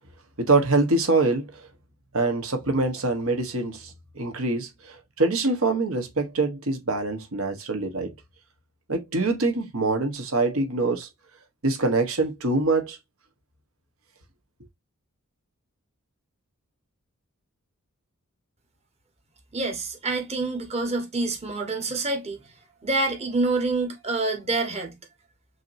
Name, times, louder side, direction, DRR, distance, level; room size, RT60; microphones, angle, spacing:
voice 1, 0.4-1.5 2.1-8.1 8.9-11.1 11.6-13.0, right 3 dB, 65° right, 1.2 m, -24 dB
voice 2, 19.5-22.4 22.8-25.0, right 3 dB, 30° right, 1.2 m, -27 dB
6.2 x 2.8 x 2.6 m
head